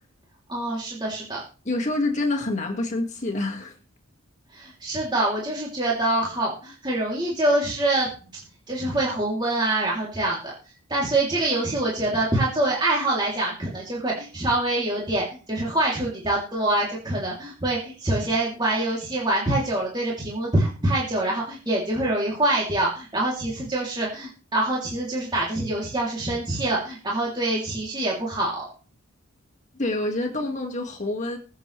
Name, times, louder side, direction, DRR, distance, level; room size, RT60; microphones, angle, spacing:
voice 1, 0.5-1.4 4.5-8.1 8.7-10.5 10.9-28.6, right 1 dB, 20° right, 3.1 m, -25 dB
voice 2, 1.7-3.7 29.7-31.4, left 2 dB, 35° left, 2.1 m, -27 dB
22.0 x 7.6 x 3.3 m
head